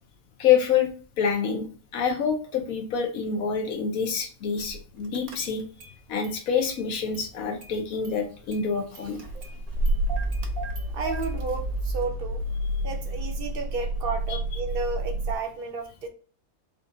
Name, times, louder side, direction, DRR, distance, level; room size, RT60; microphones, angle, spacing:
voice 1, 0.4-0.9 1.2-1.6 1.9-5.6 6.1-9.2 14.3-14.4, left 7 dB, 75° left, 1.2 m, -26 dB
Car / Engine starting, 4.6-4.8 5.1-6.0 6.2-7.3 7.6-15.4, right 1 dB, 75° right, 1.2 m, -30 dB
voice 2, 10.9-12.4 12.8-16.1, right 4 dB, 50° right, 0.7 m, -32 dB
4.2 x 2.6 x 3.7 m
omnidirectional pair, 1.5 m